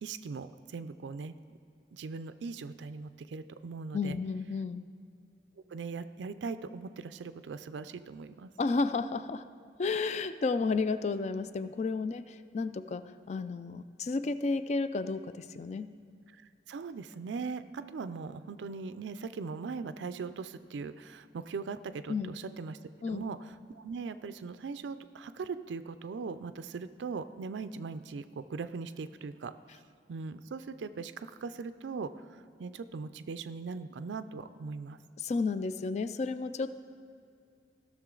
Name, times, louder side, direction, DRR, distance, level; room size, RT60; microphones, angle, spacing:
voice 1, 0.0-1.6 1.9-4.2 5.7-8.5 16.3-22.8 23.1-29.5 30.1-35.0, right 4 dB, 85° right, 12 dB, 0.4 m, -40 dB
voice 2, 3.9-4.8 8.6-9.4 9.8-15.9 22.1-22.3 23.0-23.2 35.2-36.7, left 4 dB, 40° left, 12 dB, 0.3 m, -32 dB
16.5 x 6.3 x 3.8 m, 2.4 s
head